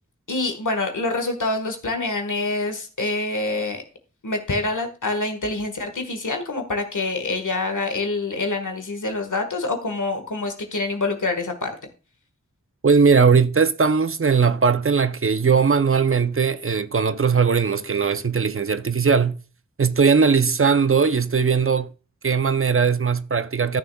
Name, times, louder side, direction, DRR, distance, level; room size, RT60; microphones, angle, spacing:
voice 1, 0.3-3.8 4.2-11.7, left 2 dB, 90° left, 1.6 m, -26 dB
voice 2, 12.8-19.4 19.8-21.9 22.2-23.8, right 5 dB, 45° right, 0.6 m, -19 dB
14.0 x 6.5 x 2.3 m
wide cardioid pair, 45°, 30 cm